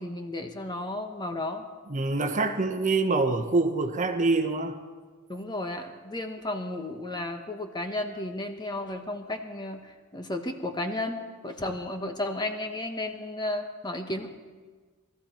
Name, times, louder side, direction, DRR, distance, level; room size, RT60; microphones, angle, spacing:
voice 1, 0.0-1.6 5.3-14.3, left 1 dB, 20° left, 5 dB, 1.2 m, -33 dB
voice 2, 1.9-4.8, right 3 dB, 35° right, 6 dB, 1.1 m, -25 dB
21.0 x 14.5 x 4.5 m, 1.4 s
head